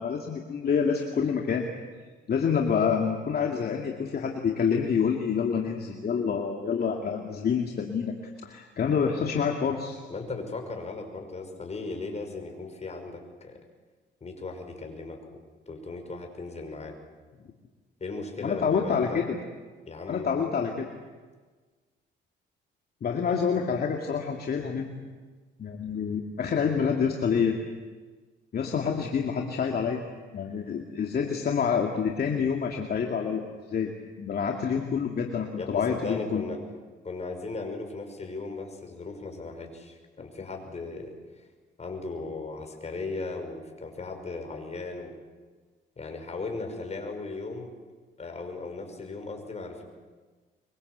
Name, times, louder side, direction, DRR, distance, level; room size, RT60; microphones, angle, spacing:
voice 1, 0.0-1.6 2.3-8.1 8.4-10.0 18.4-19.4 20.1-20.9 23.0-24.9 25.6-27.6 28.5-30.0 30.3-33.4 33.7-33.9 34.2-36.4, left 6 dB, 50° left, 2 dB, 2.5 m, -27 dB
voice 2, 10.1-13.6 14.2-15.2 15.7-17.0 18.0-19.2 19.9-20.4 23.3-23.4 35.6-36.6 37.0-41.1 41.8-45.1 46.0-47.7 48.2-49.8, left 3 dB, 35° left, 4 dB, 5.8 m, -37 dB
24.0 x 24.0 x 8.2 m, 1.4 s
cardioid pair, 90°, 20 cm